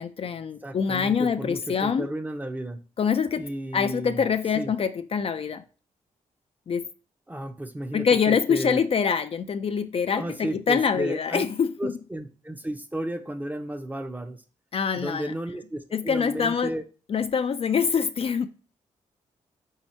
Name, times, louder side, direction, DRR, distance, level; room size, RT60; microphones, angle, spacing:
voice 1, 0.0-2.1 3.0-3.5 3.7-5.6 6.7-6.8 7.9-11.9 14.7-15.3 15.9-16.7 17.1-18.5, left 6 dB, 45° left, 0.4 m, -25 dB
voice 2, 0.6-2.8 3.4-4.2 4.5-4.7 7.3-8.8 10.1-11.4 11.8-14.4 14.9-16.8, right 1 dB, 10° right, 0.6 m, -33 dB
4.1 x 2.8 x 4.4 m
cardioid pair, 70°, 13 cm